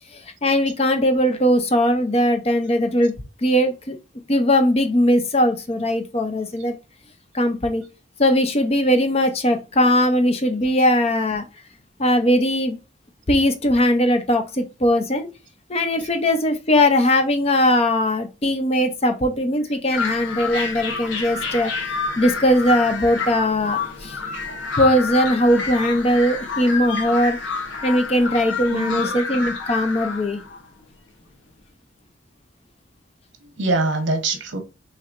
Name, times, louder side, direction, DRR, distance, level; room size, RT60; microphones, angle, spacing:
voice 1, 0.4-3.1 3.4-4.0 4.3-6.7 7.3-7.8 8.2-11.4 12.0-12.8 13.3-15.3 15.7-21.7 22.2-24.1 24.8-27.4 27.8-30.4, left 1 dB, 30° left, 0.6 m, -19 dB
sound 1, 19.9-30.7, left 4 dB, 80° left, 1.2 m, -29 dB
voice 2, 28.5-29.2 33.4-34.6, right 2 dB, 70° right, 1.0 m, -25 dB
5.7 x 3.2 x 2.5 m
head